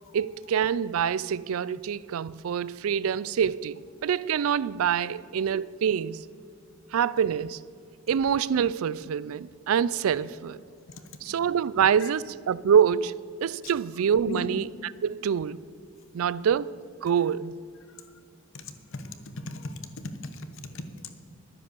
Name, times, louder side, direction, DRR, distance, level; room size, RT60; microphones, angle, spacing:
voice 1, 0.1-6.3 6.9-7.6 8.1-10.6 11.2-14.6 15.0-15.7 16.1-17.6, right 8 dB, 75° right, 0.4 m, -26 dB
voice 2, 10.9-11.4 12.0-12.1 13.6-13.8 14.3-14.5 17.9-18.2 18.5-21.2, left 2 dB, 65° left, 1.1 m, -40 dB
12.0 x 9.8 x 6.8 m
head